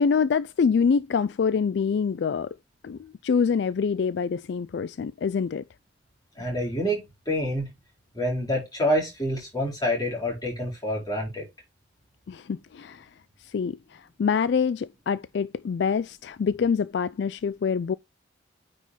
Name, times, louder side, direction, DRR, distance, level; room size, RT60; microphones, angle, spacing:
voice 1, 0.0-2.6 2.8-5.6 12.3-13.1 13.4-17.9, left 6 dB, 60° left, 0.3 m, -25 dB
voice 2, 6.4-7.7 8.1-11.4, equal, 20° left, 4.7 m, -27 dB
9.2 x 5.3 x 3.2 m
head